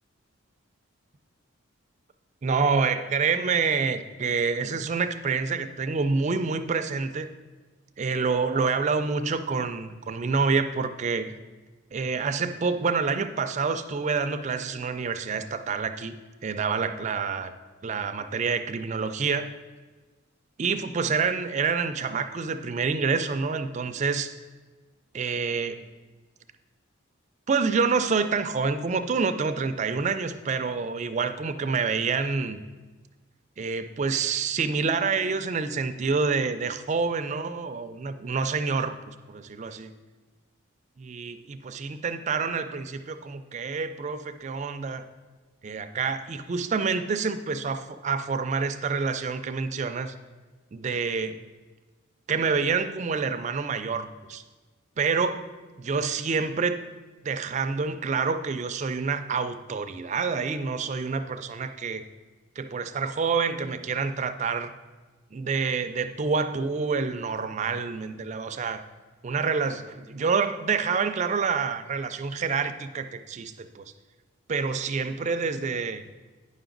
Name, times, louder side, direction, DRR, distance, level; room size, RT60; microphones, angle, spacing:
voice 1, 2.4-7.3 8.0-11.3 11.9-16.1 16.4-17.5 17.8-19.5 20.6-24.3 25.1-25.9 27.5-32.6 33.6-39.9 41.0-45.0 45.6-50.1 50.7-51.4 52.3-54.4 55.0-55.5 55.8-56.9 57.2-62.0 62.6-64.7 65.3-68.8 69.2-73.9 74.5-76.0, right 5 dB, 35° right, 9 dB, 0.3 m, -27 dB
9.5 x 5.9 x 3.8 m, 1.3 s
head